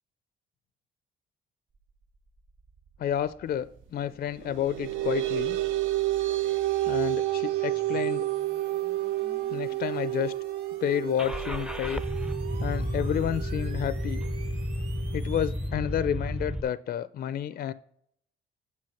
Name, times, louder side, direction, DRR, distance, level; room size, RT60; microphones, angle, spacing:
sound 1, 1.7-15.7, right 4 dB, 55° right, 2.6 m, -51 dB
voice 1, 3.0-5.6 6.9-8.3 9.5-10.3 10.8-12.0 12.6-14.2 15.1-17.7, left 10 dB, 50° left, 16 dB, 0.4 m, -30 dB
sound 2, 4.4-15.4, right 15 dB, 80° right, 0.5 m, -30 dB
Car / Engine starting, 11.2-16.6, equal, 5° right, 0.5 m, -32 dB
7.6 x 5.8 x 5.8 m, 0.69 s
cardioid pair, 90°, 20 cm